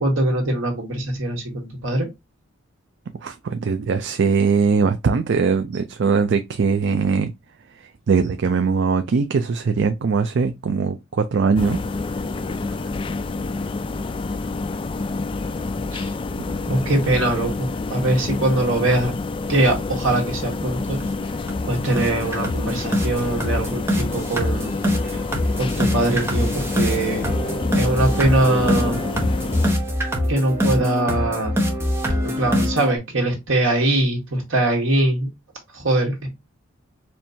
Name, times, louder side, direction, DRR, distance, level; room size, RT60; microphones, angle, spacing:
voice 1, 0.0-2.1 15.9-16.1 16.7-19.1 19.5-21.0 21.6-24.7 25.6-27.3 27.8-29.0 30.3-31.5 32.2-35.3 35.7-36.3, right 1 dB, 75° right, 1.7 m, -22 dB
voice 2, 3.2-7.3 7.7-11.8 16.4-16.5, right 5 dB, 60° right, 0.4 m, -21 dB
sound 1, 11.6-29.8, left 3 dB, 25° left, 0.3 m, -28 dB
sound 2, 20.5-20.6 21.0-21.2 21.5-21.6 22.0-33.0, left 1 dB, 10° right, 0.9 m, -24 dB
4.4 x 3.2 x 2.7 m
head